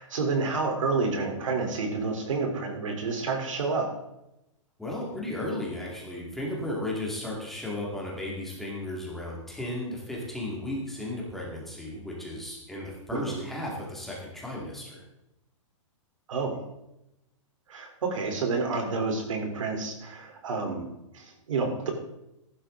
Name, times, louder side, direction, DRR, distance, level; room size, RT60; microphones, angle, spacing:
voice 1, 0.0-3.9 13.1-13.4 16.3-16.6 17.7-20.9 21.1-21.9, right 4 dB, 75° right, 3 dB, 3.7 m, -29 dB
voice 2, 4.8-15.0, left 1 dB, ahead, -4 dB, 2.3 m, -35 dB
14.5 x 11.5 x 3.9 m, 0.88 s
hypercardioid pair, 170°, 17 cm